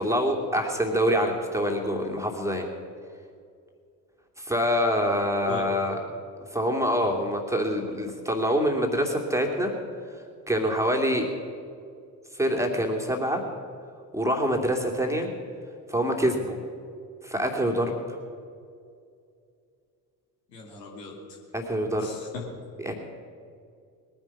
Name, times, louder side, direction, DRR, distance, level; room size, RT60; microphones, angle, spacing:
voice 1, 0.0-2.7 4.4-6.0 6.5-9.7 10.5-11.3 12.3-13.4 14.1-15.3 15.9-16.6 17.2-18.2 21.5-22.1 22.8-22.9, equal, 5° right, 1 dB, 2.6 m, -25 dB
voice 2, 20.5-21.1 22.0-22.4, left 4 dB, 75° left, -1 dB, 2.6 m, -38 dB
21.0 x 10.0 x 5.9 m, 2.4 s
figure-of-eight pair, 50°, 49 cm